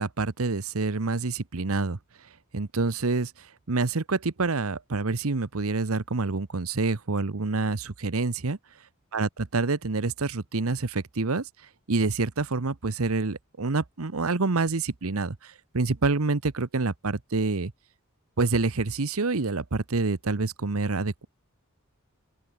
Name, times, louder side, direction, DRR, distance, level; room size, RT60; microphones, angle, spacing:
voice 1, 0.0-2.0 2.5-3.3 3.7-8.6 9.1-9.3 9.5-11.4 11.9-17.7 18.4-21.3, right 3 dB, 75° right, 1.0 m, -27 dB
open air
head